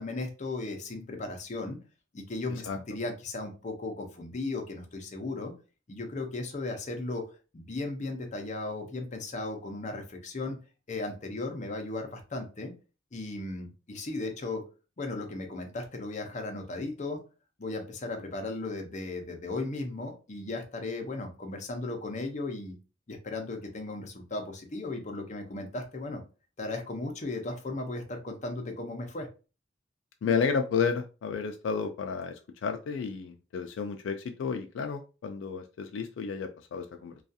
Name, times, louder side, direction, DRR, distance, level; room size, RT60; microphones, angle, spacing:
voice 1, 0.0-1.8 2.1-5.5 5.9-7.2 7.5-10.6 10.9-12.7 13.1-14.6 15.0-17.2 17.6-22.8 23.1-26.2 26.6-29.3, left 2 dB, 40° left, 3 dB, 0.6 m, -36 dB
voice 2, 30.2-37.2, left 5 dB, 80° left, 6 dB, 0.3 m, -31 dB
2.3 x 2.3 x 2.6 m, 0.32 s
head